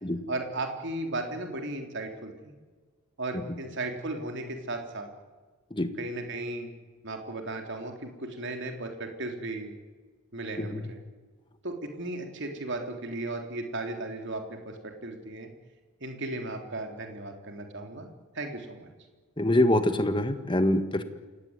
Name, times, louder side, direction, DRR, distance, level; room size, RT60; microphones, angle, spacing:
voice 1, 0.3-2.5 3.2-5.1 6.0-6.7 7.0-9.7 10.3-11.0 11.6-15.5 16.0-18.1 18.3-18.9, right 2 dB, 55° right, 4 dB, 3.4 m, -35 dB
voice 2, 19.4-21.0, left 1 dB, 20° left, 9 dB, 1.7 m, -25 dB
28.5 x 17.5 x 9.7 m, 1.4 s
head